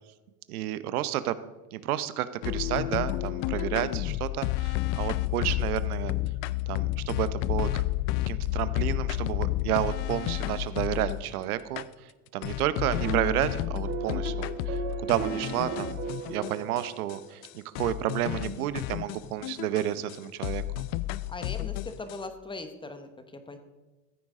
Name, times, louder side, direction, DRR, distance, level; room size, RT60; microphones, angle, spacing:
voice 1, 0.5-1.4 1.7-6.1 6.7-7.8 8.3-16.0 16.3-20.6, right 13 dB, 80° right, 14 dB, 0.8 m, -31 dB
sound 1, 2.4-11.3 11.8-11.9 12.4-16.8 17.1-17.2 17.4-17.5 17.7-20.2 20.4-22.2, left 16 dB, 40° left, 0.4 m, -31 dB
sound 2, 13.0-17.5, right 7 dB, 35° right, 1.3 m, -36 dB
voice 2, 21.3-23.6, left 3 dB, 10° left, 8 dB, 1.0 m, -40 dB
15.0 x 9.3 x 3.7 m, 1.2 s
supercardioid pair, 125°, 43 cm